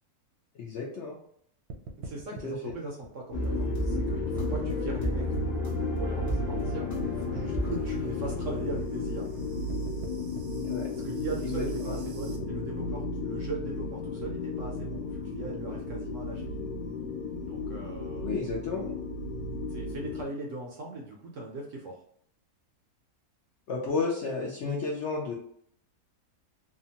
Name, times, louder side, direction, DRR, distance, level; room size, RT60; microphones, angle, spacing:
voice 1, 0.5-1.2 2.4-2.7 10.6-10.9 11.6-12.0 18.2-18.8 23.7-25.3, left 4 dB, 65° left, -3 dB, 0.7 m, -32 dB
sound 1, 1.7-4.1 4.4-6.7 7.0-12.4, right 3 dB, 80° right, 1.1 m, -44 dB
voice 2, 2.0-5.4 5.9-6.9 7.1-9.3 11.0-16.6 17.4-18.3 19.7-22.0, right 3 dB, 65° right, -1 dB, 0.8 m, -39 dB
sound 2, 3.3-20.2, left 3 dB, 80° left, 1.1 m, -34 dB
sound 3, 3.3-9.4, equal, 25° left, 0.3 m, -33 dB
2.8 x 2.2 x 2.7 m, 0.64 s
omnidirectional pair, 1.6 m